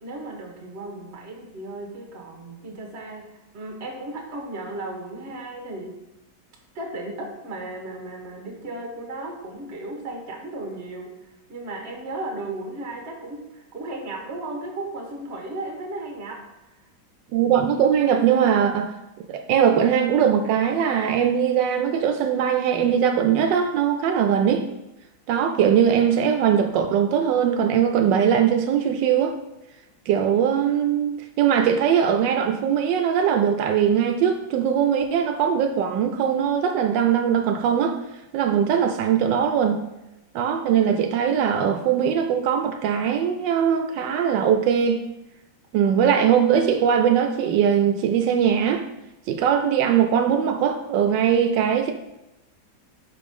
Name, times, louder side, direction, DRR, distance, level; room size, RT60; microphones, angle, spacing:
voice 1, 0.0-3.3 3.5-6.0 6.7-11.1 11.5-16.4, right 2 dB, 40° right, 1.4 m, -35 dB
voice 2, 17.3-18.9 19.3-24.7 25.3-29.4 30.1-38.0 38.3-39.8 40.3-45.0 45.7-48.9 49.3-51.9, right 8 dB, 80° right, 1.2 m, -21 dB
5.4 x 5.0 x 5.2 m
omnidirectional pair, 1.9 m